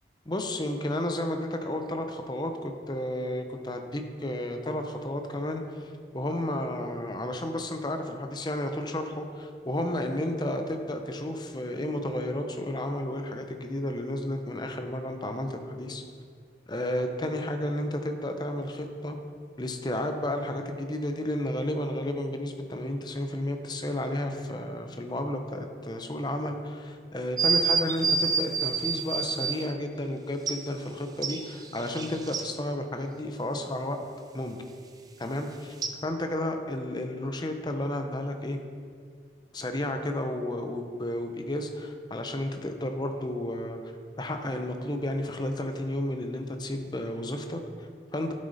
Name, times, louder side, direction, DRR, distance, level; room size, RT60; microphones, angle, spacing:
voice 1, 0.3-16.0 16.7-19.2 19.6-34.0 34.3-34.6 35.2-35.7 36.0-38.6 39.5-43.9 44.2-48.3, left 1 dB, 25° left, 5 dB, 0.7 m, -32 dB
sound 1, 27.4-29.6 30.5-30.6 31.2-32.5 35.8-35.9, right 5 dB, 20° right, 0.5 m, -27 dB
12.0 x 6.4 x 4.1 m, 2.1 s
head